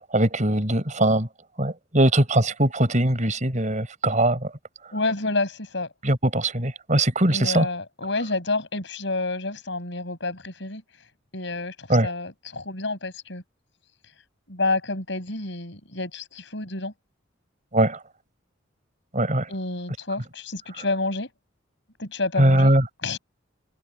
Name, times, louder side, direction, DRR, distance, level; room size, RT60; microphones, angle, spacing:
voice 1, 0.1-1.3 1.6-4.4 6.0-7.7 11.9-12.1 17.7-18.0 19.1-19.5 22.4-22.8, right 1 dB, 40° right, 4.6 m, -21 dB
voice 2, 4.9-5.9 7.3-10.8 11.3-13.4 14.5-16.9 19.5-21.3 22.0-22.7 23.0-23.2, left 2 dB, 65° left, 7.0 m, -29 dB
head